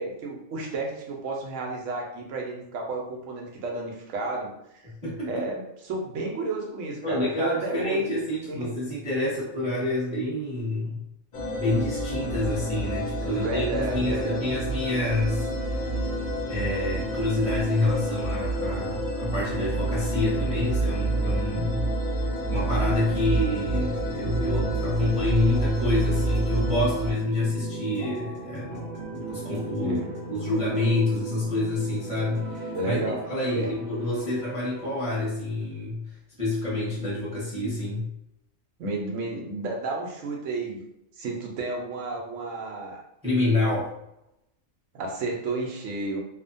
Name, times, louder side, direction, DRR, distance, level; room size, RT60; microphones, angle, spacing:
voice 1, 0.0-4.5 5.2-8.7 13.2-14.5 29.8-30.1 32.7-33.2 33.5-33.7 38.8-40.8 41.2-43.0 44.9-46.2, right 2 dB, 80° right, 0 dB, 1.0 m, -32 dB
voice 2, 5.0-5.4 7.0-11.0 11.6-15.7 16.5-21.8 22.5-30.0 30.3-36.0 36.4-38.1 43.2-43.9, left 2 dB, 5° right, -7 dB, 0.6 m, -27 dB
sound 1, 11.3-27.1, right 1 dB, 55° left, 0.6 m, -28 dB
sound 2, 22.4-35.0, right 2 dB, 45° right, 0.8 m, -38 dB
2.7 x 2.1 x 2.6 m, 0.84 s
omnidirectional pair, 1.3 m